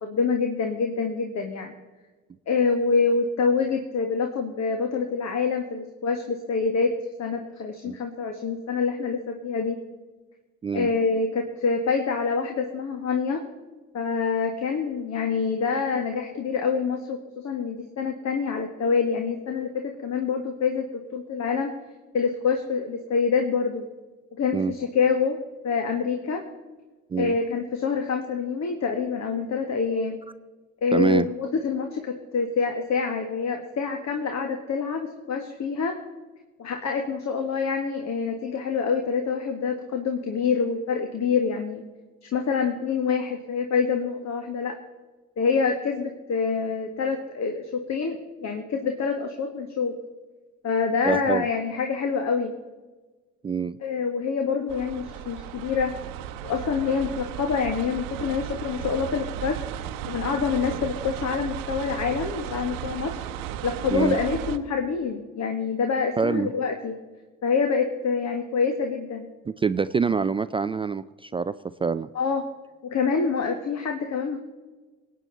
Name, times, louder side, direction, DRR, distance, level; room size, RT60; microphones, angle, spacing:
voice 1, 0.0-1.7 2.5-6.9 7.2-9.8 10.7-13.4 13.9-21.7 22.1-23.9 24.4-25.4 25.6-26.4 27.2-30.2 30.8-36.0 36.6-41.8 42.2-44.8 45.4-49.9 50.6-52.5 53.8-55.9 56.4-59.7 60.1-63.2 63.6-67.0 67.4-69.3 72.1-72.5 72.8-74.4, left 5 dB, 40° left, 5 dB, 1.8 m, -26 dB
voice 2, 30.9-31.3 51.1-51.5 53.4-53.8 63.9-64.2 66.2-66.5 69.5-71.5 71.8-72.1, right 5 dB, 15° right, 13 dB, 0.4 m, -25 dB
sound 1, 54.7-64.6, right 11 dB, 55° right, 1.0 m, -35 dB
24.0 x 9.4 x 4.0 m, 1.3 s
figure-of-eight pair, 60°, 40 cm